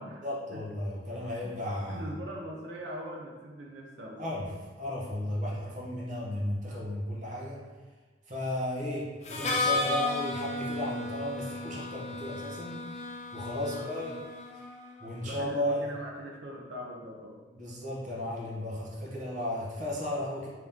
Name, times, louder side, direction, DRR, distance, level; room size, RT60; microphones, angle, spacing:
voice 1, 0.2-2.1 4.2-7.6 8.3-12.9 13.3-14.2 14.5-14.6 15.0-15.8 17.5-20.5, left 1 dB, 40° right, -5 dB, 0.9 m, -34 dB
voice 2, 1.9-4.3 13.6-14.2 15.2-17.4, equal, 70° right, -1 dB, 0.5 m, -41 dB
Harmonica, 9.2-15.0, left 2 dB, 35° left, 0.4 m, -34 dB
3.6 x 2.9 x 3.5 m, 1.3 s
head